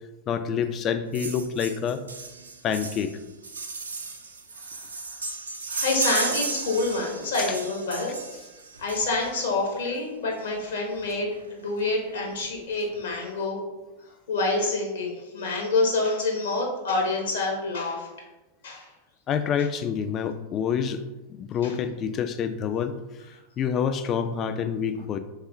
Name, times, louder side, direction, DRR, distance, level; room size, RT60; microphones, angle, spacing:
voice 1, 0.3-2.0 2.6-3.2 5.7-5.8 7.4-7.6 19.3-21.0 21.3-23.0 23.6-25.2, left 7 dB, 30° left, 10 dB, 0.3 m, -27 dB
sound 1, 1.1-9.5 10.6-10.7 11.0-11.1 11.3-11.5 11.8-12.4 12.9-13.0, right 4 dB, 70° right, 0.5 m, -34 dB
voice 2, 4.6-5.2 5.7-8.2 8.8-13.6 14.3-18.1 18.6-18.9 21.6-21.7, left 3 dB, 65° left, 0 dB, 1.0 m, -27 dB
3.5 x 3.4 x 3.4 m, 1.1 s
figure-of-eight pair, 90°, 0 cm